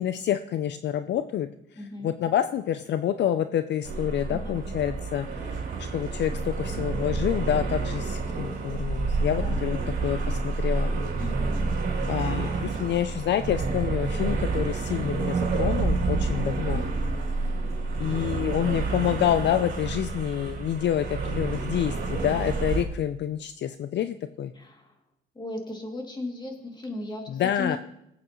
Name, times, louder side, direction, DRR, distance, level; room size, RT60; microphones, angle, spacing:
voice 1, 0.0-5.5 5.8-9.8 10.0-10.9 12.1-16.8 18.0-24.5 27.3-27.8, left 10 dB, 60° left, 11 dB, 0.5 m, -28 dB
voice 2, 1.7-2.1 4.3-4.8 9.4-9.7 11.2-11.7 12.4-12.8 16.5-16.8 24.5-24.9 25.3-27.8, left 2 dB, 20° left, 1 dB, 2.6 m, -37 dB
sound 1, 3.8-22.8, right 3 dB, 70° right, 2.8 m, -29 dB
20.0 x 8.6 x 3.1 m, 0.81 s
cardioid pair, 90°, 20 cm